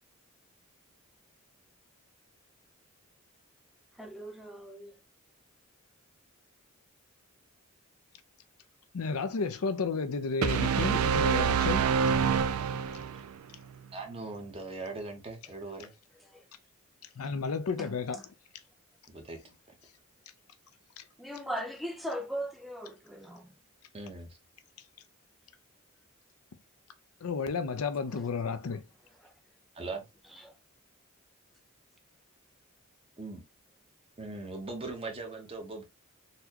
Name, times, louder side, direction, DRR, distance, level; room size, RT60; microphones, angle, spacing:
voice 1, 3.9-5.0 16.3-16.4 17.8-18.2 21.2-23.5 28.1-28.2 28.7-28.8 29.2-29.3 30.3-30.5, equal, ahead, 0.5 m, -39 dB
voice 2, 8.9-11.9 17.2-18.2 21.0-21.1 27.2-28.8, left 4 dB, 85° left, 0.5 m, -32 dB
sound 1, 10.4-13.3, right 7 dB, 85° right, 0.4 m, -26 dB
voice 3, 13.9-15.9 19.1-19.4 23.9-24.4 29.7-30.0 33.2-33.4 34.2-35.8, right 3 dB, 25° right, 0.9 m, -40 dB
4.1 x 2.2 x 2.7 m
head